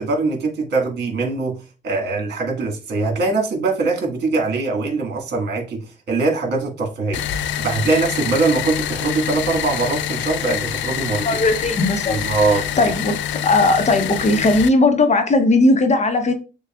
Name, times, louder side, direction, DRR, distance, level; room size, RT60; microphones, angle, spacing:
voice 1, 0.0-1.6 1.8-5.8 6.1-11.4 12.1-12.6, right 3 dB, 55° right, 1.7 m, -22 dB
sound 1, 7.1-14.7, left 10 dB, 70° left, 0.4 m, -26 dB
voice 2, 11.2-12.2 12.5-13.1 13.4-16.3, left 2 dB, 35° left, 0.8 m, -17 dB
6.6 x 2.3 x 2.3 m
cardioid pair, 90°, 20 cm